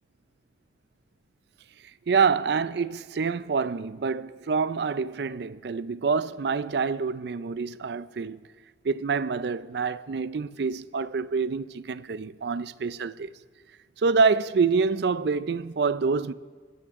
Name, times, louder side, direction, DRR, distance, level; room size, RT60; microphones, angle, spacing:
voice 1, 2.1-8.4 8.8-13.3 14.0-16.3, right 5 dB, 65° right, 0.4 m, -26 dB
25.0 x 13.0 x 3.6 m
head